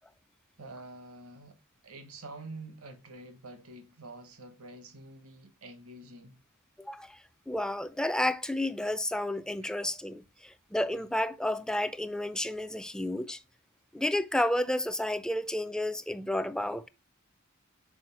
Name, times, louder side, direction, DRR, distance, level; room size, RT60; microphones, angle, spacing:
voice 1, 0.6-1.6 1.8-6.4, right 2 dB, 85° right, 1.2 m, -47 dB
voice 2, 6.8-13.4 13.9-16.9, left 1 dB, 5° left, 0.3 m, -31 dB
6.3 x 4.4 x 4.3 m
head